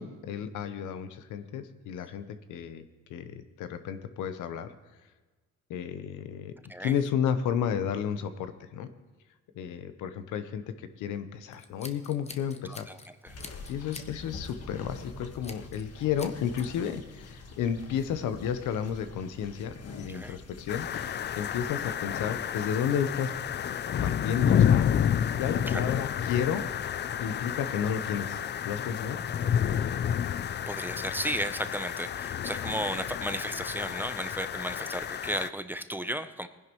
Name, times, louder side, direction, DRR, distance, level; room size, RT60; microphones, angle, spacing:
voice 1, 0.0-2.8 3.1-4.7 5.7-6.5 6.8-8.9 9.5-12.9 13.6-20.9 21.3-23.3 24.0-24.9 25.3-26.7 27.2-28.4 28.6-29.2, left 8 dB, 90° left, 10 dB, 0.9 m, -32 dB
Scissors, 11.5-13.1 13.4-14.1 14.4-14.7 15.4-15.9 16.2-16.7, left 3 dB, 20° left, 1.0 m, -46 dB
voice 2, 12.6-13.0 13.2-13.4 20.1-20.4 25.7-25.8 30.7-36.5, equal, 5° right, 10 dB, 0.6 m, -34 dB
sound 1, 13.3-21.9, left 3 dB, 55° left, 1.5 m, -46 dB
sound 2, 20.7-35.5, left 9 dB, 35° left, 0.4 m, -30 dB
19.5 x 10.5 x 3.1 m, 1.3 s
cardioid pair, 90°, 30 cm